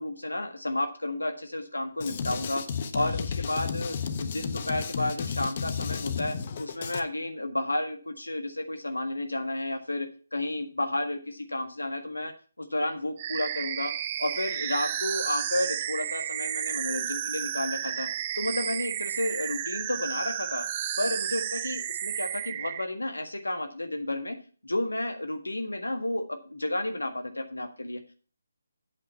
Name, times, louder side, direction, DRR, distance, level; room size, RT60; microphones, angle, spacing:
voice 1, 0.0-2.6 2.9-12.3 12.6-13.9 14.2-18.1 18.4-20.6 21.0-24.4 24.6-28.1, left 1 dB, 90° left, 6 dB, 1.6 m, -31 dB
Drum kit, 2.0-7.0, left 6 dB, 40° left, 1.2 m, -33 dB
sound 1, 13.2-22.8, right 11 dB, 30° right, 0.6 m, -32 dB
8.6 x 8.1 x 5.5 m, 0.38 s
figure-of-eight pair, 150°, 0 cm